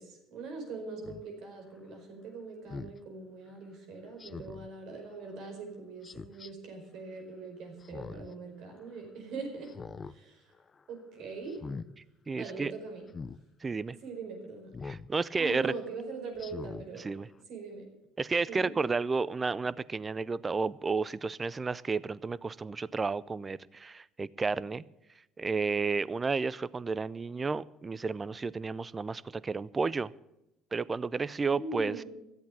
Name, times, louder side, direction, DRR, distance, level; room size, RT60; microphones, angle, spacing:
voice 1, 0.0-9.7 10.0-10.5 10.9-11.6 12.4-13.1 14.0-14.7 15.4-17.1 17.4-17.8 18.5-18.7 31.4-32.1, right 4 dB, 65° right, 3 dB, 4.9 m, -42 dB
Speech synthesizer, 1.0-1.2 2.7-3.0 4.2-4.7 6.0-6.5 7.8-8.3 8.7-8.8 9.6-10.2 10.5-10.8 11.5-11.9 13.1-13.4 14.7-15.1 15.6-15.7 16.4-16.9 17.3-17.4, left 4 dB, 30° left, 0.6 m, -42 dB
voice 2, 12.3-12.7 13.6-14.0 14.8-15.7 17.0-17.3 18.2-24.8 25.4-30.1 30.7-32.0, right 4 dB, 25° right, 20 dB, 0.5 m, -32 dB
13.0 x 8.2 x 8.8 m, 0.89 s
hypercardioid pair, 75°, 0 cm